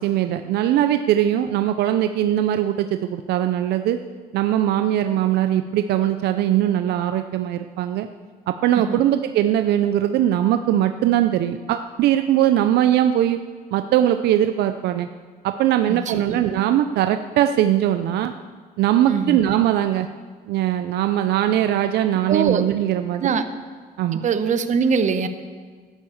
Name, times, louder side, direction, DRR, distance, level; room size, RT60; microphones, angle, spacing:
voice 1, 0.0-4.0 4.3-8.1 8.5-13.4 13.7-15.1 15.4-18.3 18.8-20.1 20.5-23.3 24.0-24.2, right 11 dB, 75° right, 9 dB, 0.5 m, -20 dB
voice 2, 15.9-16.4 19.1-19.4 22.3-22.6 23.2-23.4 24.2-25.3, right 6 dB, 45° right, 9 dB, 1.0 m, -22 dB
11.5 x 9.9 x 7.1 m, 1.5 s
cardioid pair, 110°, 17 cm